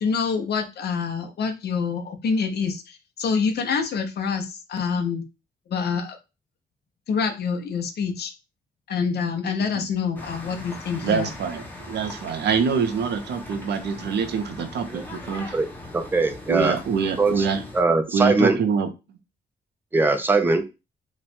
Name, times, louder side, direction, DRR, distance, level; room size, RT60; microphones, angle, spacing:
voice 1, 0.0-5.2 5.7-6.2 7.1-8.3 8.9-11.3, left 5 dB, 70° left, 5 dB, 0.7 m, -26 dB
sound 1, 10.2-17.8, left 2 dB, 10° left, 0.7 m, -40 dB
voice 2, 11.0-15.5 16.5-17.6 18.1-18.9, right 6 dB, 80° right, 8 dB, 0.6 m, -25 dB
voice 3, 15.9-16.7 17.2-17.4 17.7-18.6 19.9-20.6, right 3 dB, 10° right, 7 dB, 0.4 m, -21 dB
3.0 x 2.2 x 4.1 m, 0.27 s
wide cardioid pair, 170°, 17 cm